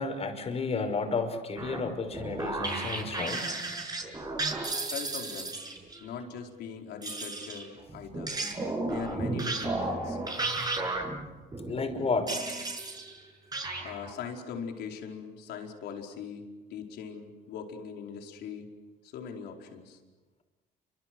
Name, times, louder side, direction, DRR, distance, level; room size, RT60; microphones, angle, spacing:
voice 1, 0.0-3.5 11.6-12.4, left 4 dB, 35° left, 6 dB, 5.5 m, -32 dB
sound 1, 1.6-6.0 7.0-13.2 13.5-14.1, right 2 dB, 25° right, 7.0 m, -34 dB
voice 2, 4.9-5.6 6.0-8.4 8.8-10.2 13.8-18.7 19.0-20.0, left 6 dB, 80° left, 2 dB, 4.8 m, -41 dB
30.0 x 25.0 x 7.9 m, 1.2 s
cardioid pair, 110°, 17 cm